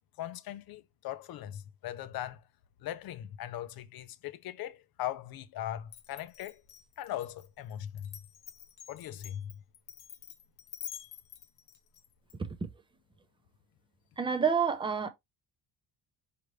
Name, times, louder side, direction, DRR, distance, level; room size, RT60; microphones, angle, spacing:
voice 1, 0.2-2.4 2.8-6.6 7.0-8.1 8.9-9.5, left 12 dB, 60° left, 0.7 m, -39 dB
Glass, 5.9-12.4, left 10 dB, 85° left, 1.0 m, -48 dB
voice 2, 14.2-15.1, right 6 dB, 10° right, 0.6 m, -28 dB
5.1 x 2.9 x 3.1 m
cardioid pair, 135°, 41 cm